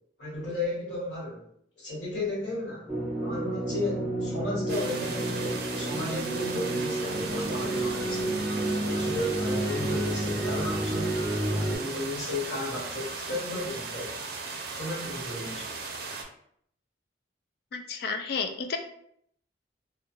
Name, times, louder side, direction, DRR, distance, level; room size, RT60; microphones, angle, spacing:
voice 1, 0.2-1.5 1.8-2.9 3.2-8.3 8.8-11.2 11.5-14.1 14.7-15.7, left 2 dB, 75° left, -6 dB, 1.4 m, -34 dB
sound 1, 2.9-11.8, right 1 dB, ahead, 0.6 m, -30 dB
sound 2, 4.7-16.2, right 4 dB, 55° right, 0.4 m, -37 dB
voice 2, 17.7-18.8, left 5 dB, 60° left, 5 dB, 0.3 m, -31 dB
2.3 x 2.2 x 2.9 m, 0.69 s
head